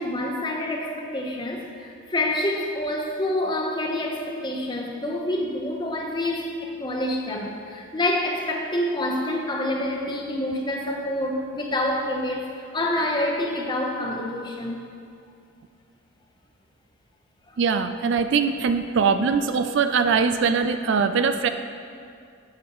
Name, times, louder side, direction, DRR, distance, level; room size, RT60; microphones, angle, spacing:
voice 1, 0.0-14.8, left 1 dB, 20° left, 0 dB, 0.9 m, -27 dB
voice 2, 17.6-21.5, right 5 dB, 60° right, 9 dB, 0.4 m, -22 dB
12.5 x 7.2 x 3.1 m, 2.4 s
head